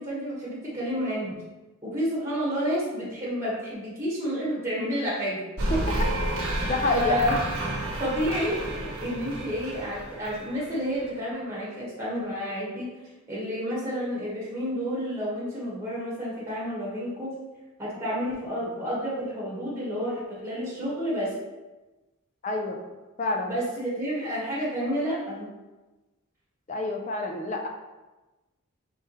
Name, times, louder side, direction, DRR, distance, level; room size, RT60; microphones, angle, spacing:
voice 1, 0.0-1.4 1.8-5.4 6.9-7.4 8.0-12.9 13.3-17.3 17.8-21.3 23.4-25.5, equal, 10° right, -7 dB, 1.3 m, -30 dB
sound 1, 5.6-11.0, right 1 dB, 80° right, 0.9 m, -30 dB
voice 2, 6.6-7.2 22.4-22.8 23.2-23.5 26.7-27.7, left 2 dB, 35° left, 3 dB, 0.4 m, -28 dB
4.4 x 3.5 x 3.0 m, 1.1 s
head